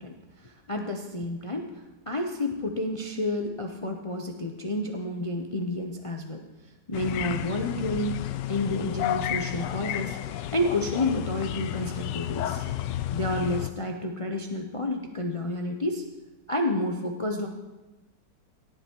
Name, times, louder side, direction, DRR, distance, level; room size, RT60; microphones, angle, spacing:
voice 1, 0.0-1.7 2.1-6.4 6.9-8.2 8.5-12.6 13.1-16.0 16.5-17.5, left 1 dB, 60° left, 3 dB, 0.3 m, -30 dB
sound 1, 6.9-13.7, left 12 dB, 80° left, 1.2 m, -31 dB
17.0 x 7.9 x 4.5 m, 1.1 s
omnidirectional pair, 1.9 m